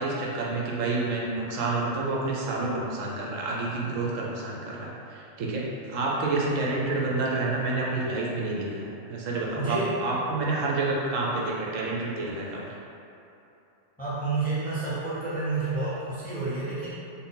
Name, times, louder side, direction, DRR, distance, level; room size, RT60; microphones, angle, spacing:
voice 1, 0.0-5.6 5.9-12.6, right 3 dB, 80° right, -3 dB, 1.0 m, -29 dB
voice 2, 9.5-10.0 14.0-16.9, right 3 dB, 10° left, -10 dB, 0.5 m, -29 dB
3.9 x 2.2 x 3.8 m, 2.8 s
omnidirectional pair, 1.3 m